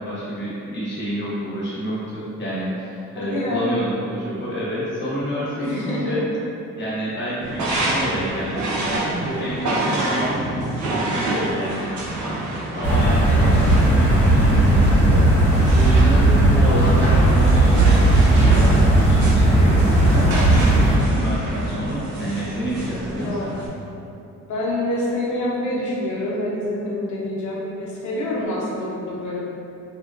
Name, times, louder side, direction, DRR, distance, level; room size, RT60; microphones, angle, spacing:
voice 1, 0.0-6.2 6.8-10.4 10.7-12.2 12.7-23.5, equal, 35° left, -8 dB, 0.8 m, -28 dB
voice 2, 3.2-3.7 5.6-6.2 16.1-16.5 23.1-23.5 24.5-29.4, left 1 dB, 75° left, -4 dB, 0.6 m, -26 dB
sound 1, 7.4-23.7, right 1 dB, 70° right, 0.5 m, -28 dB
sound 2, 12.8-21.0, right 1 dB, 5° left, 0.6 m, -16 dB
2.7 x 2.2 x 2.3 m, 2.7 s
cardioid pair, 90°, 30 cm